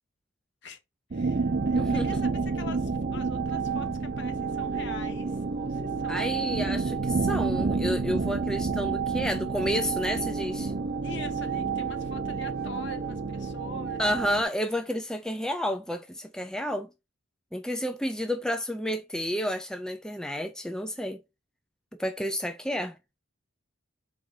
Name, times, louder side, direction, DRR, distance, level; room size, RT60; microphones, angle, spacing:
voice 1, 1.1-6.4 11.0-14.0, left 3 dB, 55° left, 0.9 m, -44 dB
sound 1, 1.1-14.4, right 4 dB, 45° right, 0.6 m, -29 dB
voice 2, 1.7-2.2 6.1-10.7 14.0-16.9 17.5-21.2 21.9-23.0, equal, 5° left, 0.4 m, -30 dB
4.3 x 3.2 x 3.7 m
head